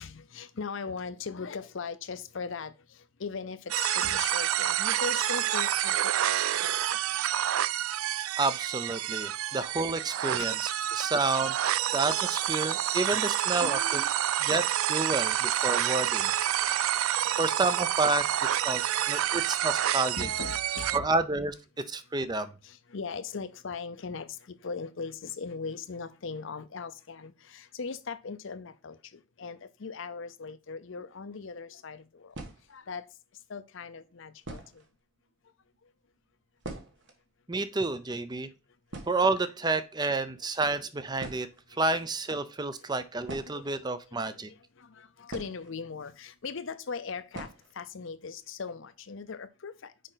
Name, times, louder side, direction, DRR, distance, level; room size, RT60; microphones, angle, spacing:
voice 1, 0.0-7.0 9.5-9.6 10.4-10.5 12.7-13.0 13.6-14.4 17.0-17.4 18.7-19.3 19.6-21.0 22.6-32.4 32.7-33.0 33.5-34.8 41.3-41.4 43.5-49.9, left 5 dB, 60° left, 0.6 m, -40 dB
sound 1, 3.7-21.0, right 11 dB, 75° right, 0.4 m, -28 dB
voice 2, 8.4-14.1 14.4-16.3 17.4-18.3 18.6-18.8 19.1-20.3 20.9-21.5 21.9-22.5 37.5-38.5 39.1-41.5 41.8-44.5, right 3 dB, 20° right, 0.5 m, -30 dB
sound 2, 31.3-31.4 32.3-33.0 33.8-33.9 34.4-35.0 35.3-35.4 35.6-35.8 36.1-37.2 37.5-37.6 37.9-38.1 38.5-38.6 38.9-39.8 40.7-40.8 41.2-41.7 43.2-44.3 45.3-46.1 46.4-46.5 47.3-47.8 48.1-48.2 48.6-48.7 49.1-49.4, right 2 dB, 55° right, 1.4 m, -44 dB
6.5 x 5.0 x 3.9 m
head